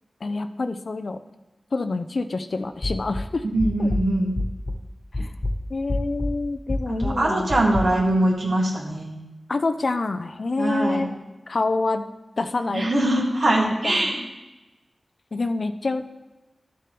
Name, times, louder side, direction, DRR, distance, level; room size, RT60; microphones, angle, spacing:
voice 1, 0.2-1.2 1.7-3.4 3.8-3.9 5.1-5.3 5.7-7.5 9.5-11.1 11.5-12.0 12.4-12.9 13.8-14.1 15.3-16.0, left 3 dB, 55° left, 9 dB, 0.6 m, -27 dB
sound 1, 2.8-4.9 5.1-7.8, left 1 dB, 30° left, 1.3 m, -28 dB
voice 2, 3.5-4.4 6.9-9.2 10.6-11.1 12.7-14.2, right 1 dB, 75° right, -3 dB, 2.4 m, -22 dB
12.5 x 7.7 x 3.4 m, 1.1 s
wide cardioid pair, 95°, 0 cm